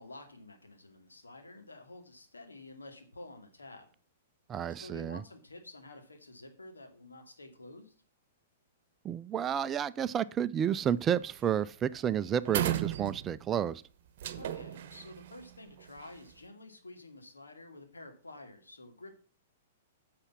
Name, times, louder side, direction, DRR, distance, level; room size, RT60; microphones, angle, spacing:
voice 1, 0.0-3.9 4.8-7.9 14.3-19.1, left 2 dB, 80° left, 2.4 m, -50 dB
voice 2, 4.5-5.2 9.0-13.8, right 9 dB, 25° right, 0.5 m, -31 dB
sound 1, 10.8-11.0 11.4-11.7 11.9-12.0 12.4-13.6 14.2-16.2, right 11 dB, 50° right, 1.0 m, -36 dB
9.9 x 6.8 x 6.0 m
figure-of-eight pair, 105°, 0 cm